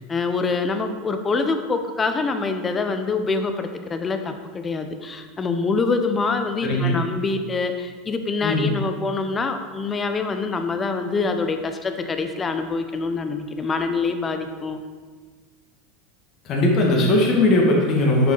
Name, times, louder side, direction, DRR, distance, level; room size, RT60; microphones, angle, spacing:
voice 1, 0.0-14.8, left 4 dB, 25° left, 7 dB, 0.9 m, -25 dB
voice 2, 6.6-7.0 8.4-8.7 16.4-18.3, left 1 dB, 45° left, -1 dB, 2.4 m, -19 dB
9.6 x 6.3 x 4.1 m, 1.4 s
hypercardioid pair, 95°, 0 cm